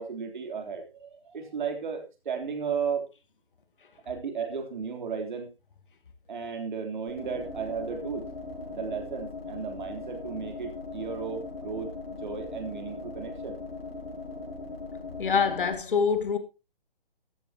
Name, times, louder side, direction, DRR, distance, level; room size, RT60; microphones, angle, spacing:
voice 1, 0.0-3.0 4.1-5.5 6.3-8.2 8.7-13.6, right 6 dB, 55° right, 3.5 m, -34 dB
sound 1, 7.1-15.7, left 3 dB, 90° left, 5.8 m, -39 dB
voice 2, 15.2-16.4, left 6 dB, 60° left, 2.1 m, -25 dB
13.5 x 12.0 x 2.9 m
figure-of-eight pair, 145°, 29 cm